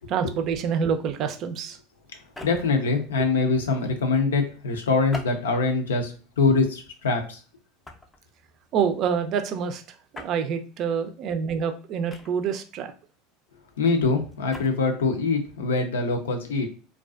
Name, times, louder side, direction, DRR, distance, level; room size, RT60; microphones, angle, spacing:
voice 1, 0.1-1.8 8.7-9.8 10.1-12.9, right 7 dB, 50° right, 8 dB, 0.4 m, -27 dB
sound 1, 2.2-2.8 5.1-5.8 6.5-6.7 7.8-8.2 10.1-10.4 12.1-12.6 14.3-14.7, left 2 dB, 15° left, 0.5 m, -41 dB
voice 2, 2.4-7.4 13.8-16.7, left 3 dB, 90° left, 5 dB, 0.5 m, -24 dB
2.4 x 2.3 x 2.3 m, 0.38 s
hypercardioid pair, 90°, 0 cm